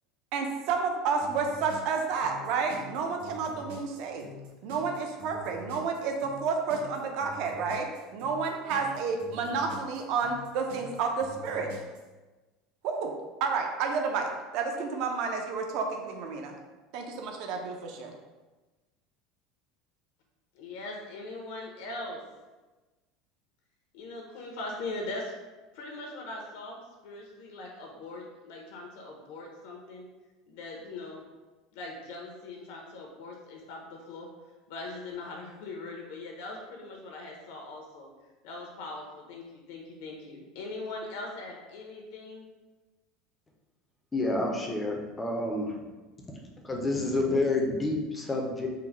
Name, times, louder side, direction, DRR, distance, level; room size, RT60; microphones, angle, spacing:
voice 1, 0.3-4.3 4.6-7.9 8.1-11.7 12.8-13.1 13.4-16.5 16.9-18.1, right 5 dB, 50° right, 3 dB, 0.5 m, -30 dB
sound 1, 1.2-12.0, left 1 dB, 85° right, 0.8 m, -45 dB
voice 2, 20.5-22.2 23.9-25.3 25.7-30.1 30.5-31.3 31.7-34.3 34.7-38.1 38.4-42.5, left 2 dB, 70° left, 0 dB, 0.7 m, -41 dB
voice 3, 44.1-45.8 46.6-48.7, left 2 dB, 10° left, 1 dB, 0.4 m, -29 dB
3.8 x 2.1 x 4.4 m, 1.2 s
cardioid pair, 175°, 0 cm